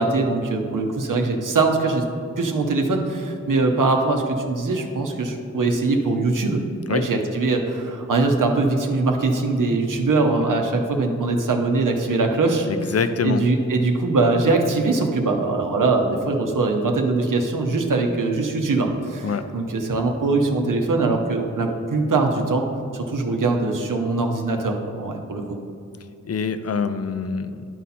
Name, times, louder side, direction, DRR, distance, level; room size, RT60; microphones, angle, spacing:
voice 1, 0.0-2.0 2.4-6.6 6.9-12.9 13.2-22.7 22.9-25.6, right 3 dB, 75° right, 3 dB, 0.8 m, -22 dB
voice 2, 12.7-13.4 19.2-19.4 26.3-27.6, left 5 dB, 50° left, 11 dB, 0.5 m, -25 dB
11.0 x 4.1 x 4.2 m, 2.5 s
wide cardioid pair, 90°, 32 cm